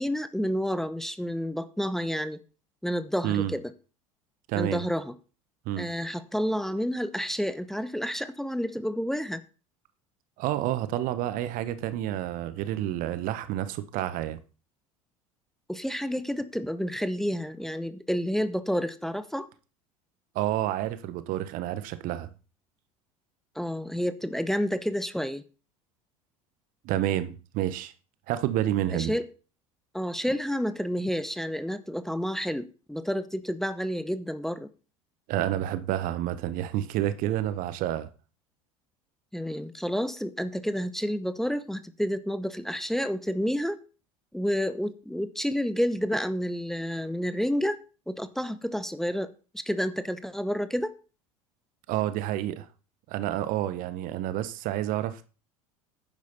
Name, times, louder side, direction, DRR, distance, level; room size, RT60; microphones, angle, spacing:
voice 1, 0.0-2.4 2.8-3.7 4.5-5.1 5.8-9.4 15.7-19.5 23.5-25.4 28.9-29.3 29.9-34.7 39.3-43.8 44.3-47.8 48.1-50.9, equal, ahead, 0.9 m, -30 dB
voice 2, 3.2-3.5 4.5-4.8 5.6-5.9 10.4-14.4 20.3-22.3 26.8-27.9 28.3-29.1 35.3-38.1 51.9-52.7 53.1-55.3, right 13 dB, 50° right, 1.1 m, -29 dB
11.0 x 9.6 x 4.2 m
figure-of-eight pair, 70°, 18 cm